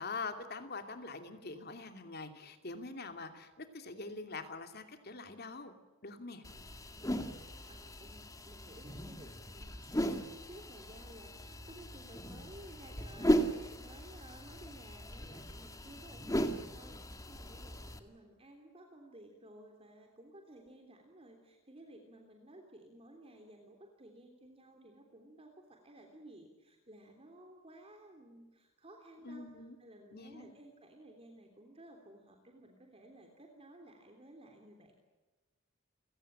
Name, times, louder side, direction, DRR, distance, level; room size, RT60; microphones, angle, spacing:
voice 1, 0.0-5.7 6.0-6.4 29.2-29.7 30.1-30.5, left 3 dB, 50° left, 7 dB, 2.8 m, -44 dB
sound 1, 6.4-18.0, equal, 15° left, 2.0 m, -37 dB
voice 2, 6.5-29.5 29.8-34.9, right 1 dB, 30° right, 2 dB, 3.3 m, -56 dB
30.0 x 17.0 x 8.8 m, 1.2 s
head